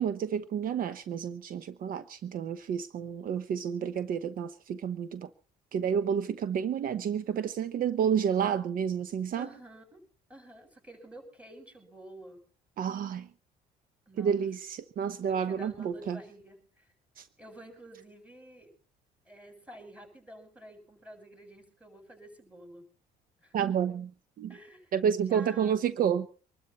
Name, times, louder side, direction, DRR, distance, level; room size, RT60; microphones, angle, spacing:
voice 1, 0.0-5.3 5.7-9.5 12.8-13.3 14.2-16.2 17.2-17.3 23.5-24.1 24.4-24.5 24.9-26.3, right 8 dB, 60° right, 1.0 m, -30 dB
voice 2, 9.4-10.0 10.3-12.4 14.1-14.4 15.2-16.9 17.4-18.7 19.3-22.9 23.4-23.5 24.5-24.9 25.3-25.9, right 1 dB, 10° right, 7.7 m, -50 dB
25.0 x 12.5 x 4.2 m
cardioid pair, 110°, 17 cm